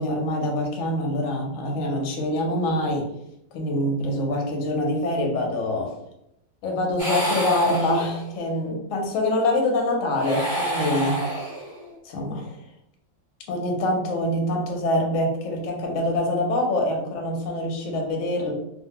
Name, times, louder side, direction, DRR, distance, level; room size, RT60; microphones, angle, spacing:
voice 1, 0.0-3.1 3.5-5.9 6.6-11.2 12.0-12.6 13.5-18.5, left 1 dB, 65° left, 0 dB, 0.8 m, -25 dB
sound 1, 7.0-8.5 10.1-11.9, right 1 dB, 25° right, 0.9 m, -29 dB
2.7 x 2.4 x 2.7 m, 0.80 s
omnidirectional pair, 1.9 m